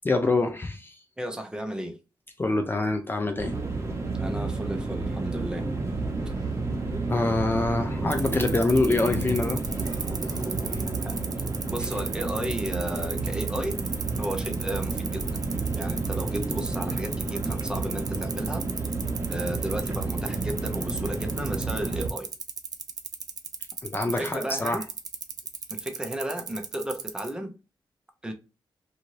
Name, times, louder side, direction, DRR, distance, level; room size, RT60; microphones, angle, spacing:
voice 1, 0.0-1.0 2.4-3.6 7.1-9.6 23.8-24.8, left 2 dB, 25° left, 0.5 m, -25 dB
voice 2, 1.2-2.0 4.2-5.7 10.1-10.2 10.5-11.2 11.7-13.8 14.2-15.4 15.7-18.6 19.3-22.3 24.0-24.8 25.7-27.5 28.2-28.3, right 1 dB, 10° right, 0.7 m, -34 dB
sound 1, 3.4-22.1, right 3 dB, 35° right, 1.0 m, -31 dB
sound 2, 5.8-10.8, left 2 dB, 40° left, 1.3 m, -41 dB
sound 3, 8.1-27.3, right 5 dB, 50° right, 0.5 m, -35 dB
2.7 x 2.6 x 3.0 m
cardioid pair, 95°, 8 cm